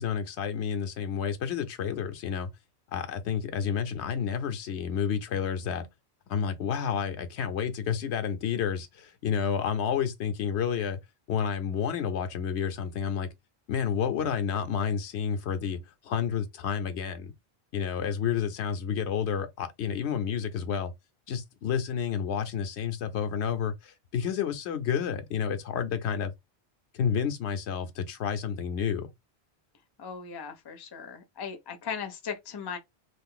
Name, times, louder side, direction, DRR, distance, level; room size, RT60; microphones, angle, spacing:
voice 1, 0.0-2.5 2.9-5.9 6.3-11.0 11.3-13.3 13.7-17.3 17.7-20.9 21.3-26.3 26.9-29.1, left 7 dB, 85° left, 0.9 m, -30 dB
voice 2, 30.0-32.8, left 6 dB, 30° left, 0.5 m, -38 dB
2.5 x 2.4 x 3.6 m
omnidirectional pair, 1.1 m